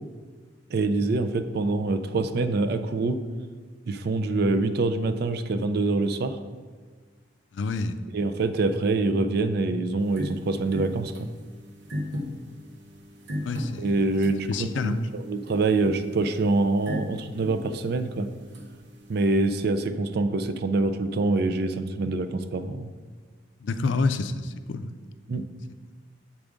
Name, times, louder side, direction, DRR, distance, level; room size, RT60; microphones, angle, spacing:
voice 1, 0.7-3.2 3.9-6.4 8.1-11.3 13.8-18.3 19.1-22.9 25.3-25.4, right 3 dB, 60° right, 9 dB, 0.4 m, -25 dB
voice 2, 7.5-8.0 13.4-14.2 14.5-15.0 23.6-24.9, left 3 dB, 80° left, 10 dB, 0.4 m, -28 dB
sound 1, 10.0-19.6, left 1 dB, 75° right, 0.8 m, -38 dB
7.4 x 5.0 x 3.6 m, 1.5 s
head